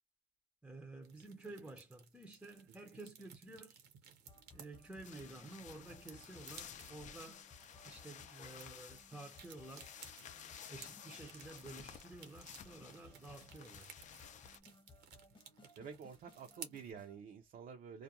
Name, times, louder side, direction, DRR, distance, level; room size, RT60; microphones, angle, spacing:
voice 1, 0.6-3.8 4.5-7.5 7.8-9.9 10.7-13.9, right 2 dB, 5° right, 0.6 m, -52 dB
sound 1, 1.0-16.9, right 7 dB, 80° right, 1.0 m, -58 dB
voice 2, 1.2-1.7 2.7-3.3 15.8-18.0, right 6 dB, 55° right, 0.6 m, -51 dB
sound 2, 4.3-17.2, left 2 dB, 30° left, 1.0 m, -62 dB
sound 3, 5.0-14.6, left 8 dB, 45° left, 0.5 m, -54 dB
2.4 x 2.2 x 2.8 m
cardioid pair, 110°, 17 cm